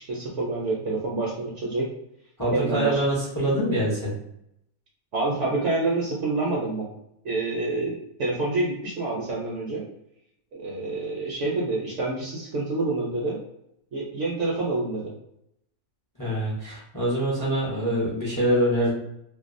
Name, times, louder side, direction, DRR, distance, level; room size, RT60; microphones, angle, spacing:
voice 1, 0.0-1.9 2.5-3.1 5.1-6.9 7.2-9.8 10.5-13.4 13.9-15.1, right 2 dB, 65° right, -4 dB, 0.9 m, -27 dB
voice 2, 2.4-4.1 16.2-18.9, equal, 25° left, -6 dB, 0.4 m, -25 dB
2.6 x 2.3 x 2.5 m, 0.77 s
omnidirectional pair, 1.5 m